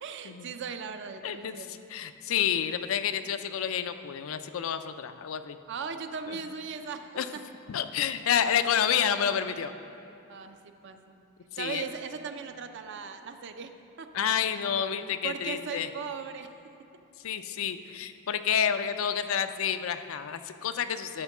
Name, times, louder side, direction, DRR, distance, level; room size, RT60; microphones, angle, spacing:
voice 1, 0.0-1.8 5.7-7.4 10.3-11.2 11.6-13.7 14.0-14.1 15.2-16.5, right 5 dB, 55° right, 8 dB, 0.5 m, -38 dB
voice 2, 1.2-5.6 6.3-6.4 7.1-7.3 7.7-9.7 11.5-11.8 14.1-15.9 17.2-21.2, left 8 dB, 70° left, 10 dB, 0.4 m, -29 dB
11.5 x 4.4 x 5.9 m, 2.8 s
head